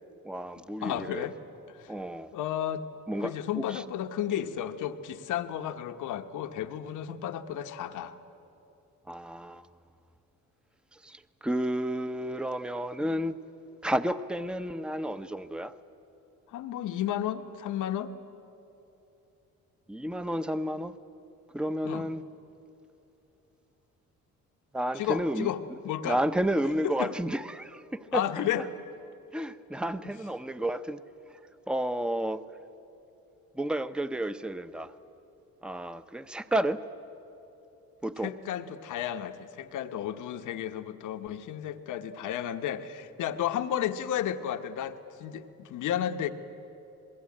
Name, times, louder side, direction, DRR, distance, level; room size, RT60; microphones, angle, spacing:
voice 1, 0.2-1.3 1.9-2.3 3.1-3.8 9.1-9.7 11.0-13.4 13.8-15.8 19.9-21.0 21.5-22.2 24.7-25.5 26.0-28.2 28.6-28.7 29.3-31.0 31.7-32.4 33.5-34.9 35.6-36.8 38.0-38.3, right 1 dB, 5° right, 12 dB, 0.8 m, -31 dB
voice 2, 0.8-1.3 1.7-1.9 2.3-2.9 3.2-8.1 16.5-18.1 21.8-22.1 24.9-26.2 26.8-27.1 28.1-28.6 38.2-46.3, left 10 dB, 85° left, 8 dB, 1.2 m, -33 dB
25.5 x 21.5 x 8.6 m, 2.9 s
cardioid pair, 90°, 30 cm